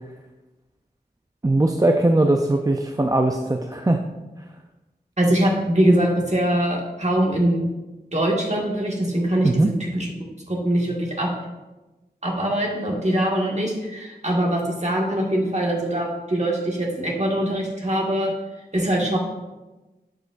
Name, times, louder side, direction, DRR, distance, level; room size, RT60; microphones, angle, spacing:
voice 1, 1.4-4.0 9.4-9.7, right 2 dB, 20° right, 3 dB, 0.4 m, -20 dB
voice 2, 5.2-7.7 8.1-9.7 10.5-11.3 12.2-18.3 18.7-19.2, right 1 dB, 40° right, -2 dB, 1.7 m, -22 dB
10.5 x 5.1 x 2.5 m, 1.1 s
wide cardioid pair, 40°, 17 cm